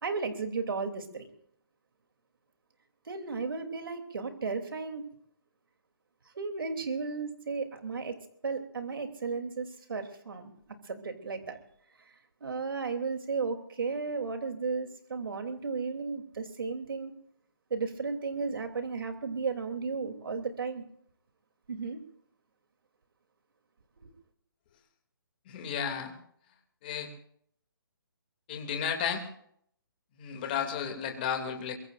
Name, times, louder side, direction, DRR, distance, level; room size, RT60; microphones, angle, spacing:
voice 1, 0.0-1.3 3.1-5.0 6.3-10.5 10.8-11.6 12.4-17.1 17.7-20.8 21.7-22.0 24.0-24.1, right 4 dB, 70° right, 5 dB, 3.0 m, -34 dB
voice 2, 25.5-26.1 26.8-27.1 28.5-29.3 30.2-31.7, left 7 dB, 25° left, 3 dB, 2.5 m, -33 dB
23.5 x 23.0 x 2.5 m, 0.66 s
hypercardioid pair, 170°, 12 cm